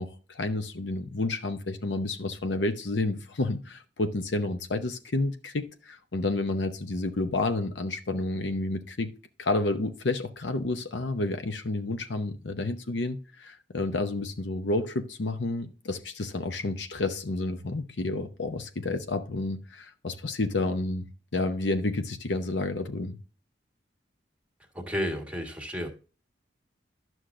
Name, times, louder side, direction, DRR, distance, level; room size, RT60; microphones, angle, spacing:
voice 1, 0.0-9.1 9.4-21.0 21.3-23.2, left 2 dB, 70° left, 0.8 m, -30 dB
voice 2, 24.7-25.9, equal, 5° right, 1.5 m, -32 dB
11.5 x 6.2 x 2.5 m
head